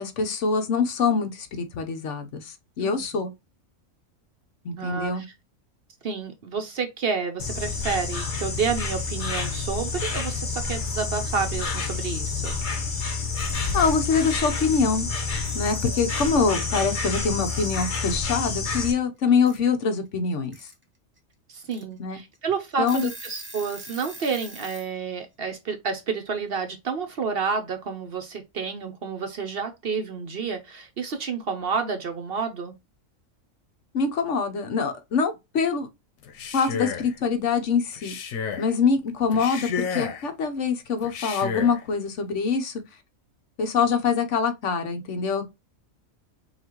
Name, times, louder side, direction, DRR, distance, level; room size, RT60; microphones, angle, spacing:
voice 1, 0.0-3.3 4.6-5.2 13.7-15.1 15.5-20.5 22.0-22.2 22.8-23.1 33.9-35.9 36.5-38.1 38.6-42.8 43.6-45.5, left 5 dB, 65° left, 1.1 m, -24 dB
voice 2, 2.8-3.2 4.7-5.3 6.0-12.5 15.9-16.0 21.5-32.8, right 5 dB, 55° right, 0.8 m, -30 dB
Insect, 7.4-18.9, left 4 dB, 40° left, 1.2 m, -29 dB
Alarm / Clock, 13.2-14.0 15.1-15.2 15.4-16.3 17.4-18.0 19.4-19.6 20.3-20.7 21.2-21.3 21.7-21.8 22.3-22.4 22.7-24.9, right 1 dB, 10° right, 1.2 m, -43 dB
Male speech man speaking, 36.2-37.1 37.9-38.7 39.3-40.3 41.0-41.8, left 6 dB, 85° left, 1.2 m, -32 dB
5.5 x 2.4 x 2.9 m
omnidirectional pair, 1.4 m